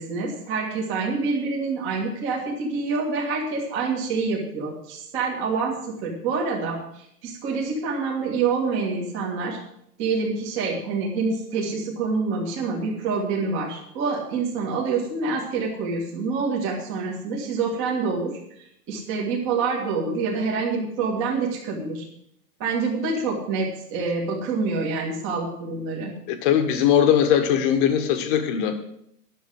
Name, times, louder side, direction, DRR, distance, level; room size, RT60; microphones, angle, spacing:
voice 1, 0.0-9.6 10.0-22.0 22.6-26.1, right 4 dB, 25° right, -3 dB, 2.0 m, -27 dB
voice 2, 26.3-28.8, left 9 dB, 35° left, 7 dB, 1.4 m, -20 dB
10.5 x 7.3 x 7.7 m, 0.72 s
hypercardioid pair, 155°, 47 cm